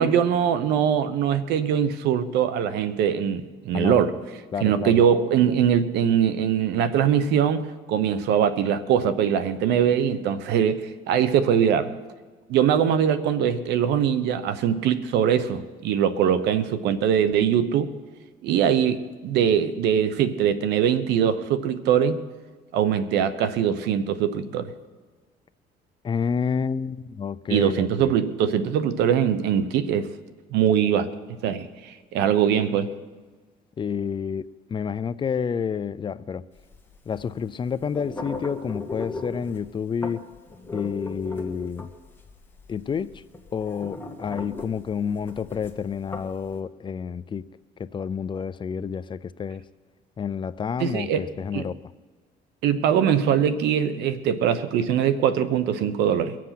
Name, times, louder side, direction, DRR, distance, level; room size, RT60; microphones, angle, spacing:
voice 1, 0.0-4.1 4.6-11.9 12.5-17.9 18.4-22.2 22.7-24.7 27.5-30.1 30.5-31.1 31.4-32.9 50.8-51.3 51.5-51.7 52.6-56.4, right 8 dB, 85° right, 12 dB, 1.0 m, -22 dB
voice 2, 3.7-4.2 4.5-5.0 26.0-28.1 33.8-36.4 37.1-40.2 40.7-41.9 42.7-43.2 43.5-47.4 47.8-49.6 50.2-51.8, left 6 dB, 30° left, 16 dB, 0.4 m, -29 dB
sound 1, 36.6-46.5, left 3 dB, 15° left, 1.6 m, -38 dB
22.5 x 7.6 x 5.9 m, 1.4 s
cardioid pair, 110°, 17 cm